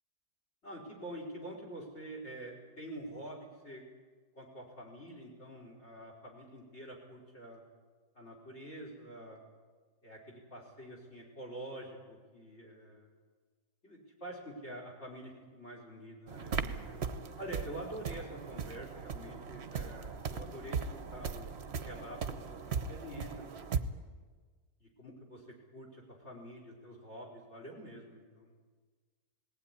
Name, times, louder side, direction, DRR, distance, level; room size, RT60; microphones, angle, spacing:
voice 1, 0.6-3.8 4.3-7.6 8.1-9.4 10.0-13.1 13.8-16.9 17.4-20.8 21.1-23.7 24.8-25.4 25.7-28.5, right 1 dB, 45° left, 0 dB, 4.9 m, -47 dB
sound 1, 16.3-23.8, right 6 dB, 50° right, 1.1 m, -38 dB
20.0 x 15.5 x 9.9 m, 1.4 s
omnidirectional pair, 1.7 m